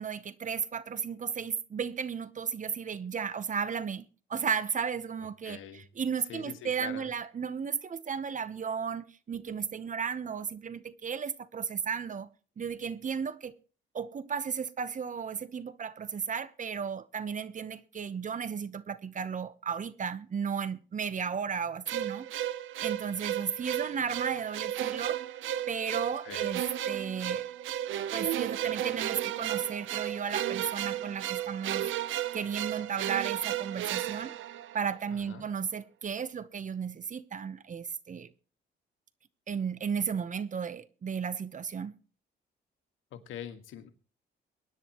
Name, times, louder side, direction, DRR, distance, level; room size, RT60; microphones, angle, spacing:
voice 1, 0.0-5.6 6.0-12.3 12.6-13.5 13.9-22.3 22.8-25.2 25.7-27.4 28.1-31.9 32.3-34.3 34.7-38.3 39.5-41.9, right 6 dB, 40° right, 0.9 m, -34 dB
voice 2, 5.2-5.8 6.2-7.1 26.2-26.5 35.1-35.5 43.1-43.9, left 9 dB, 85° left, 1.7 m, -44 dB
sound 1, 21.9-35.1, right 12 dB, 80° right, 0.8 m, -34 dB
23.0 x 10.0 x 3.0 m
cardioid pair, 90°, 20 cm